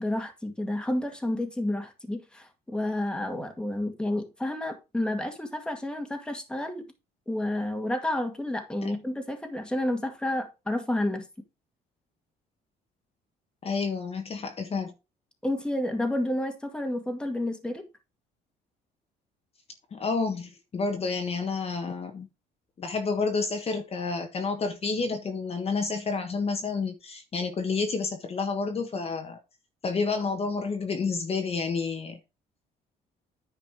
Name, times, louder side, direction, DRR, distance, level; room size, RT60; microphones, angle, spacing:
voice 1, 0.0-6.8 7.3-11.3 15.4-17.9, left 1 dB, 5° left, 2.0 m, -30 dB
voice 2, 13.6-14.9 19.9-22.3 22.8-29.4 29.8-32.2, left 4 dB, 35° left, 1.5 m, -30 dB
9.7 x 5.1 x 4.9 m
cardioid pair, 110°, 17 cm